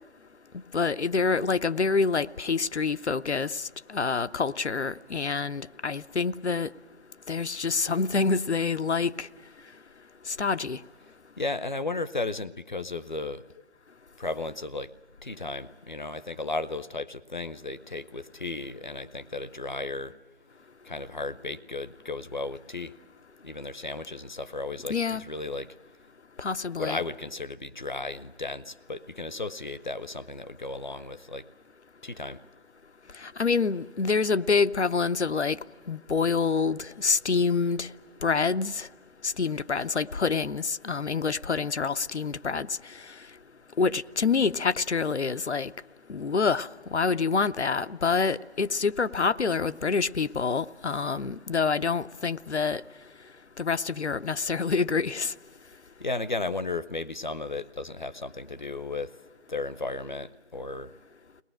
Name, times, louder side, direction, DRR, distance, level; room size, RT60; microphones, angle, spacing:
voice 1, 0.7-6.7 7.3-9.3 10.3-10.8 24.9-25.2 26.4-27.0 33.2-35.6 35.9-37.9 38.2-38.9 39.2-42.8 43.8-45.7 46.1-52.8 53.6-55.3, left 4 dB, 85° left, 0.7 m, -27 dB
voice 2, 11.4-13.4 14.2-14.9 15.2-20.1 20.8-23.0 23.4-25.7 26.8-31.4 32.0-32.4 56.0-59.1 59.5-60.9, left 3 dB, 45° left, 0.6 m, -34 dB
22.0 x 19.5 x 8.9 m
figure-of-eight pair, 160°, 33 cm